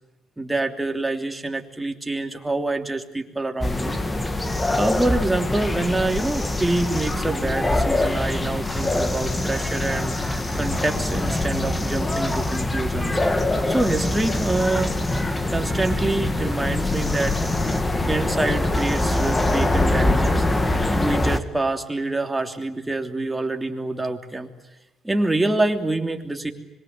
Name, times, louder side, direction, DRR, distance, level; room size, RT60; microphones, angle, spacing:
voice 1, 0.4-4.0 4.7-13.2 13.6-15.0 15.5-17.8 18.1-20.4 20.9-24.5 25.0-26.5, right 2 dB, 10° right, 5 dB, 3.1 m, -26 dB
sound 1, 3.6-21.4, left 2 dB, 15° left, 2.2 m, -23 dB
25.5 x 23.0 x 9.3 m, 0.98 s
cardioid pair, 95°, 0 cm